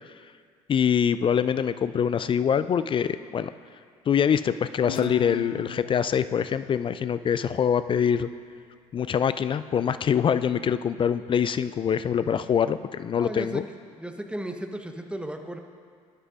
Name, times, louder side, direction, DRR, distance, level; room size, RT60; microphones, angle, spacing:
voice 1, 0.7-3.5 4.1-8.3 8.9-13.6, left 8 dB, 30° left, 13 dB, 0.4 m, -24 dB
Guitar, 4.9-8.1, left 8 dB, 85° left, 0.5 m, -40 dB
voice 2, 13.2-13.6 14.0-15.6, right 1 dB, 5° right, 5 dB, 1.0 m, -35 dB
20.0 x 11.0 x 2.5 m, 2.1 s
figure-of-eight pair, 60°, 18 cm